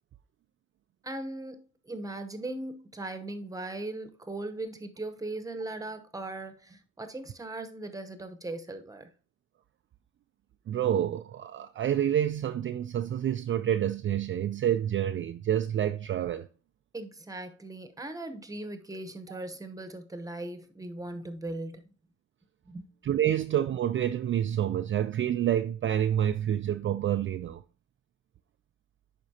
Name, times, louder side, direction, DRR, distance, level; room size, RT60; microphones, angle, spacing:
voice 1, 1.0-9.1 16.9-21.8 22.7-22.9, right 2 dB, 10° right, 0.9 m, -39 dB
voice 2, 10.7-16.5 19.3-19.4 23.0-27.6, right 10 dB, 40° right, 0.4 m, -28 dB
10.5 x 4.2 x 2.8 m
cardioid pair, 90°, 30 cm